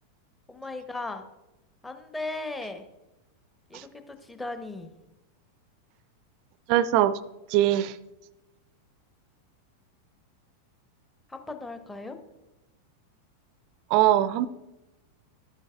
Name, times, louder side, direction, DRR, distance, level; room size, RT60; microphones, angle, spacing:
voice 1, 0.5-1.2 1.8-2.8 3.7-4.9 11.3-12.2, left 2 dB, 10° left, 8 dB, 0.8 m, -37 dB
voice 2, 6.7-7.2 7.5-8.0 13.9-14.5, right 13 dB, 45° right, 18 dB, 0.4 m, -21 dB
12.0 x 8.9 x 2.4 m, 0.98 s
figure-of-eight pair, 90°, 0 cm